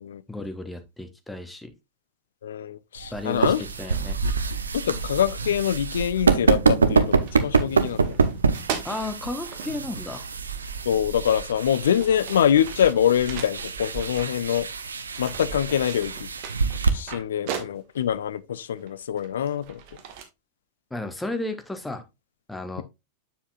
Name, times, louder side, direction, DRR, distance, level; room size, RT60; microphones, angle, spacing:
voice 1, 0.3-1.7 3.1-4.2 8.8-10.2 20.9-22.0 22.5-22.8, left 2 dB, 5° left, 1.1 m, -33 dB
voice 2, 2.4-3.6 4.2-4.3 4.7-8.2 10.9-14.7 15.2-16.3 16.8-19.8, left 9 dB, 65° left, 0.5 m, -24 dB
sound 1, 3.0-16.9, right 5 dB, 75° right, 0.7 m, -26 dB
sound 2, 7.1-9.7 10.9-11.0 11.5-14.9 15.1-18.1 18.8-20.2, right 7 dB, 45° right, 1.5 m, -38 dB
7.2 x 7.0 x 2.4 m
figure-of-eight pair, 90°, 0 cm